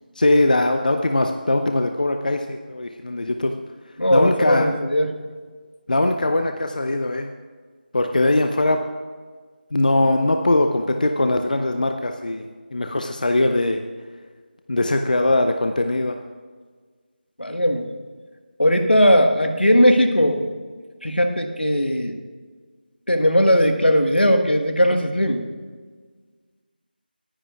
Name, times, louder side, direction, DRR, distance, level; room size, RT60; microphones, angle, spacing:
voice 1, 0.1-3.5 4.1-4.7 5.9-7.3 7.9-8.8 9.7-13.8 14.7-16.2, left 2 dB, 55° left, 5 dB, 0.6 m, -21 dB
voice 2, 4.0-5.1 17.4-17.8 18.6-20.5 21.0-22.2 23.1-25.4, equal, 85° left, 6 dB, 1.4 m, -18 dB
20.0 x 9.9 x 2.4 m, 1.5 s
figure-of-eight pair, 165°, 5 cm